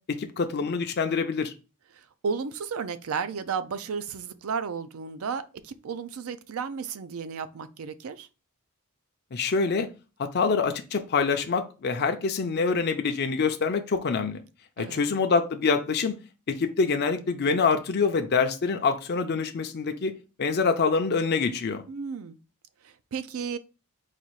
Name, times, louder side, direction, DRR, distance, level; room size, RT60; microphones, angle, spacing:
voice 1, 0.1-1.5 9.3-9.9 10.2-14.4 14.8-16.2 16.5-20.1 20.4-21.8, left 5 dB, 50° left, 0.5 m, -25 dB
voice 2, 1.9-8.3 14.8-15.0 21.9-22.4 22.8-23.6, right 6 dB, 70° right, 0.4 m, -33 dB
4.1 x 2.4 x 4.6 m
head